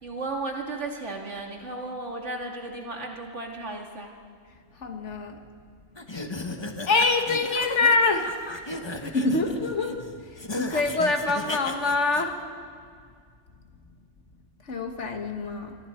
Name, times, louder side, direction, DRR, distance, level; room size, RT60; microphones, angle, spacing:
voice 1, 0.0-4.1, right 2 dB, 85° right, 1 dB, 2.6 m, -34 dB
voice 2, 4.7-5.4 6.5-8.5 9.0-12.5 14.6-15.8, left 3 dB, 90° left, 4 dB, 2.0 m, -25 dB
sound 1, 6.0-12.2, left 2 dB, 25° left, 1.1 m, -35 dB
26.0 x 25.0 x 4.5 m, 2.2 s
omnidirectional pair, 1.2 m